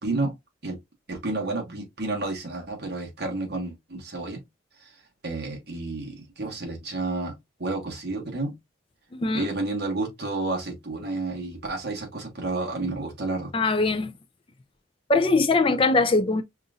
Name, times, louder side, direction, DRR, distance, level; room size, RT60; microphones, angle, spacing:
voice 1, 0.0-0.3 0.6-0.8 1.1-4.4 4.8-4.9 5.2-7.3 7.6-8.5 9.3-13.5, right 2 dB, 50° right, 1.3 m, -30 dB
voice 2, 9.1-9.5 13.5-14.1 15.1-16.4, left 3 dB, 25° left, 0.4 m, -21 dB
5.4 x 2.6 x 2.4 m
head